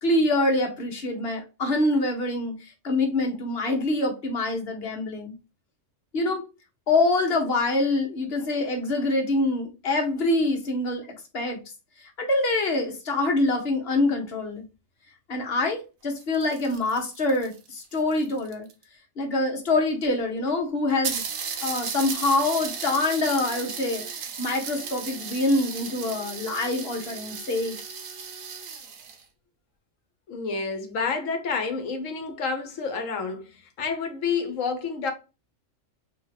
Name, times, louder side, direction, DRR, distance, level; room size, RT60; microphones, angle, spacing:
voice 1, 0.0-5.3 6.1-6.4 6.9-11.6 12.2-14.6 15.3-18.7 19.2-21.2 21.6-24.0 24.4-27.8, left 2 dB, 50° left, 1.3 m, -25 dB
sound 1, 16.1-18.8 19.7-19.8 20.0-20.1 20.5-20.6 21.0-29.2, right 6 dB, 90° right, 1.2 m, -35 dB
voice 2, 30.3-35.1, left 5 dB, 75° left, 1.2 m, -29 dB
3.5 x 2.9 x 3.9 m
omnidirectional pair, 1.3 m